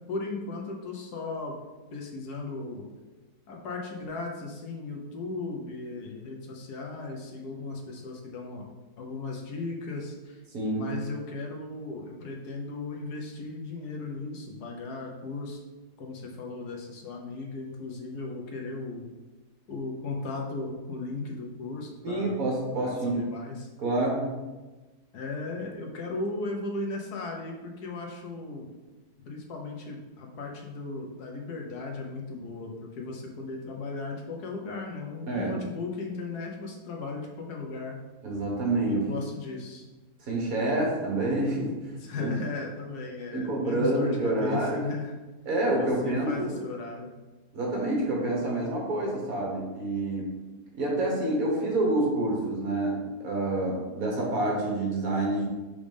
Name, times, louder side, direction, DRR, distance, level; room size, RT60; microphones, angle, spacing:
voice 1, 0.1-1.5 1.9-2.8 3.5-8.7 9.0-10.4 10.7-15.6 16.0-19.0 19.7-22.4 22.8-23.7 25.1-28.7 29.2-38.0 38.8-39.9 42.0-45.1 45.8-47.1, left 3 dB, 75° left, 1 dB, 1.5 m, -36 dB
voice 2, 10.5-10.9 22.0-23.2 23.8-24.3 35.3-35.6 38.2-39.0 40.3-41.8 42.1-42.3 43.3-44.9 45.4-46.5 47.5-50.3 50.7-55.4, right 2 dB, 60° right, -1 dB, 1.8 m, -27 dB
5.1 x 3.5 x 5.2 m, 1.2 s
omnidirectional pair, 1.7 m